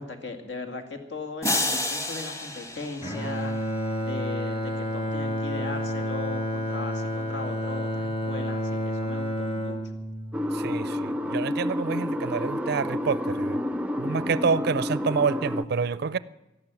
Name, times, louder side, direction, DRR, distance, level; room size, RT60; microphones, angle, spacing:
voice 1, 0.0-3.5 4.0-9.8, left 3 dB, 70° left, 2.2 m, -38 dB
sound 1, 1.4-3.8, left 2 dB, 15° left, 1.5 m, -30 dB
Bowed string instrument, 3.0-11.2, equal, 30° left, 2.3 m, -30 dB
sound 2, 10.3-15.6, left 1 dB, 5° right, 0.5 m, -29 dB
voice 2, 10.5-13.6 14.0-16.2, right 5 dB, 60° right, 0.4 m, -28 dB
13.5 x 12.0 x 9.0 m
head